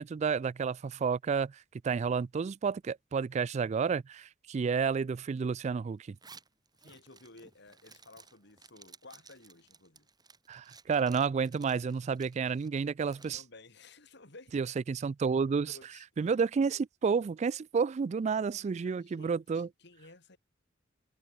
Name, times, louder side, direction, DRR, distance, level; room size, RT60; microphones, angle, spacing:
voice 1, 0.0-1.5 1.8-6.2 10.5-13.4 14.5-15.7 16.2-19.7, right 5 dB, 35° right, 0.3 m, -30 dB
Zipper (clothing), 6.1-13.4, right 5 dB, 20° right, 6.4 m, -57 dB
voice 2, 6.8-10.1 13.1-14.5 15.7-16.3 18.3-20.4, left 2 dB, 65° left, 4.8 m, -55 dB
head